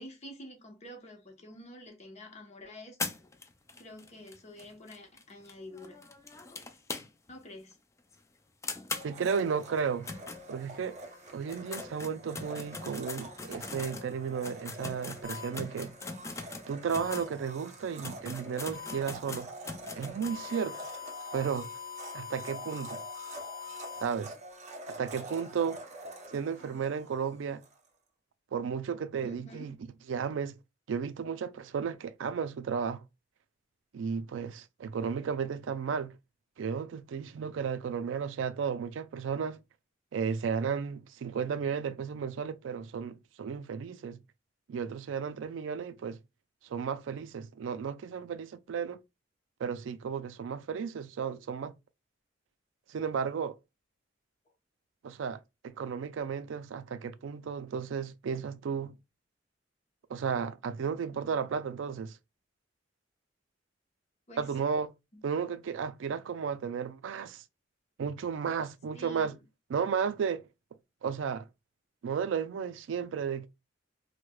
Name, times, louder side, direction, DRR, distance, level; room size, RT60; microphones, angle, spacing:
voice 1, 0.0-3.2 3.8-6.0 6.9-7.8 29.2-29.8 64.3-64.5 68.9-69.4, equal, 35° left, 0.9 m, -48 dB
sound 1, 3.0-7.4 7.7-7.8 8.1-8.2 8.6-11.0 11.4-17.3 17.7-17.8 18.0-20.4, left 3 dB, 15° left, 0.3 m, -41 dB
Domestic sounds home sounds, 9.0-27.8, right 1 dB, 40° right, 0.6 m, -47 dB
voice 2, 9.0-10.1 10.5-11.0 11.3-15.9 16.7-19.5 19.9-20.8 21.3-21.7 22.1-23.0 24.0-24.4 24.9-25.8 26.3-27.6 28.5-29.8 30.1-30.5 30.9-33.0 33.9-36.2 36.6-39.6 40.1-44.2 44.7-46.2 46.6-49.0 49.6-51.7 52.9-53.6 55.0-59.0 60.1-62.2 64.4-64.9 65.2-67.4 68.0-69.3 69.7-70.5 71.0-71.4 72.0-73.5, right 6 dB, 85° right, 0.4 m, -34 dB
sound 2, 15.2-15.5 17.0-17.2 18.7-19.0 20.2-24.0, left 7 dB, 75° left, 0.9 m, -42 dB
4.6 x 2.1 x 2.2 m
head